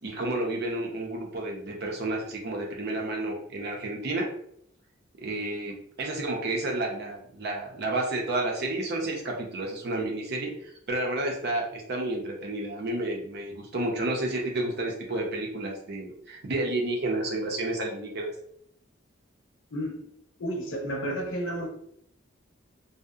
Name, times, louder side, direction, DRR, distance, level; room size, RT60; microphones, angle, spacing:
voice 1, 0.0-4.3 5.2-10.5 10.9-18.3, right 2 dB, 55° right, 0 dB, 0.6 m, -31 dB
voice 2, 19.7-20.0 20.4-21.7, equal, 80° left, 1 dB, 0.7 m, -31 dB
2.6 x 2.0 x 2.3 m, 0.69 s
head